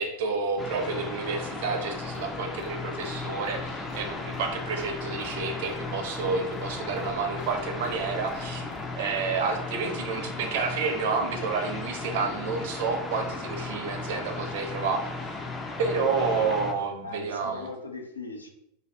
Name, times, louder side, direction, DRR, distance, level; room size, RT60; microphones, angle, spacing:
voice 1, 0.0-8.6 9.0-15.0 15.8-17.7, right 4 dB, 50° right, 4 dB, 0.5 m, -29 dB
sound 1, 0.6-16.7, left 3 dB, 15° left, 0.3 m, -36 dB
sound 2, 1.9-8.9, left 2 dB, 55° left, 0.9 m, -49 dB
voice 2, 16.3-18.5, left 3 dB, 80° left, 3 dB, 0.4 m, -40 dB
2.6 x 2.2 x 3.3 m, 0.78 s
figure-of-eight pair, 90°, 0 cm